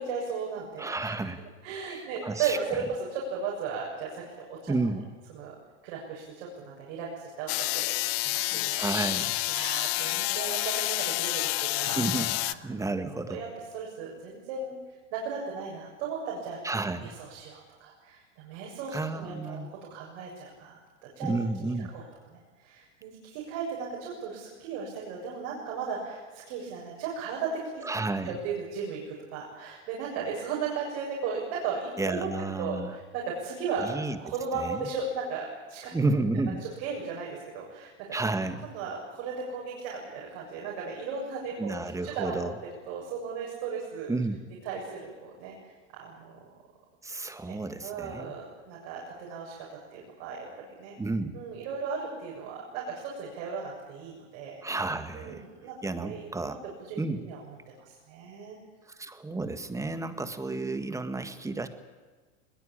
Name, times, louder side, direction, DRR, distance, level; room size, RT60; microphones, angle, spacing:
voice 1, 0.0-1.1 1.6-2.8 3.1-4.7 5.3-5.6 5.8-8.8 9.5-12.0 12.4-12.5 13.3-14.8 15.1-16.6 17.0-22.0 22.3-27.8 28.2-32.3 32.6-35.9 36.6-38.2 38.6-42.4 42.9-44.1 44.6-45.5 45.9-46.4 47.4-47.6 47.8-50.9 51.3-54.6 55.1-56.5 56.8-57.4 57.8-58.6 60.0-60.2, right 5 dB, 60° right, -3 dB, 7.3 m, -36 dB
voice 2, 0.8-1.4 1.9-2.6 4.7-5.1 8.8-9.3 11.9-12.4 12.6-13.4 16.6-17.1 18.9-19.7 21.2-22.0 27.8-28.4 32.0-32.9 33.8-34.2 34.6-34.9 35.9-36.6 38.1-38.7 41.6-42.5 44.1-44.5 47.0-48.3 51.0-51.4 54.6-55.4 55.8-56.6 57.0-57.3 58.9-61.7, right 3 dB, 10° right, 10 dB, 1.7 m, -31 dB
sound 1, 7.5-12.5, left 20 dB, 55° left, 0.9 m, -29 dB
22.0 x 19.5 x 8.9 m, 1.4 s
supercardioid pair, 130°, 36 cm